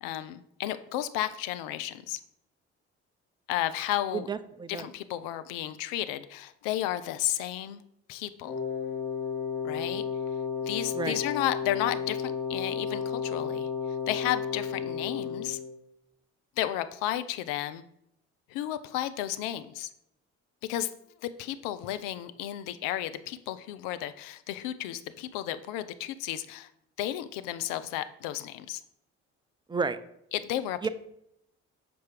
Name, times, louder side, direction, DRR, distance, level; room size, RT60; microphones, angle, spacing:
voice 1, 0.0-2.2 3.5-4.3 4.7-7.8 8.1-8.6 9.6-10.0 10.6-13.7 14.1-15.6 16.6-17.8 18.5-19.9 20.7-20.9 21.2-26.7 27.0-28.8 30.3-30.9, left 13 dB, 70° left, 12 dB, 0.6 m, -33 dB
voice 2, 4.1-4.9 10.9-11.2 29.7-30.0 30.8-30.9, right 4 dB, 15° right, 12 dB, 0.5 m, -31 dB
Wind instrument woodwind instrument, 8.4-15.7, left 6 dB, 35° left, 2.5 m, -33 dB
6.9 x 4.6 x 4.5 m, 0.76 s
hypercardioid pair, 50°, 34 cm